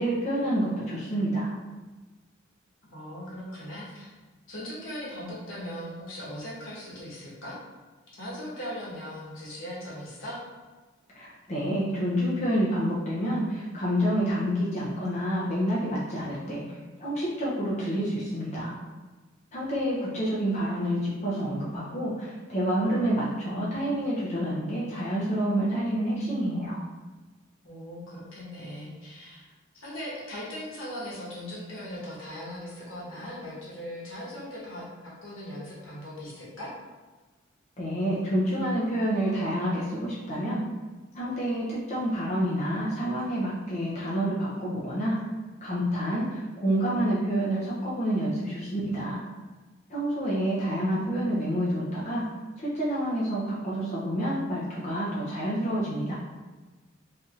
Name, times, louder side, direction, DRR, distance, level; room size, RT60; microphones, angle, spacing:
voice 1, 0.0-1.5 11.1-18.7 19.5-26.8 37.8-40.6 41.1-45.2 45.6-49.2 49.9-52.2 52.6-56.1, equal, 35° left, -8 dB, 0.5 m, -28 dB
voice 2, 2.9-4.1 4.5-7.6 8.2-10.4 27.6-29.4 29.7-36.7, equal, 80° left, -7 dB, 1.1 m, -39 dB
3.3 x 2.7 x 2.4 m, 1.3 s
head